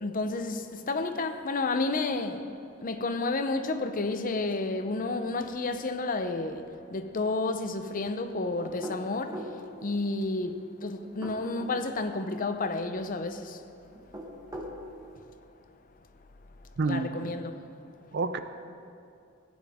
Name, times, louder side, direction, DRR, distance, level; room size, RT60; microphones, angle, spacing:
voice 1, 0.0-0.6 0.9-2.4 2.8-6.6 6.9-9.3 9.8-13.5 16.9-17.6, left 3 dB, 45° left, 0.6 m, -30 dB
sound 1, 8.6-9.6 11.0-11.8 13.9-14.8, equal, 20° right, 1.3 m, -39 dB
voice 2, 16.8-17.3 18.1-18.4, right 3 dB, 55° right, 0.5 m, -29 dB
16.0 x 9.7 x 3.5 m
head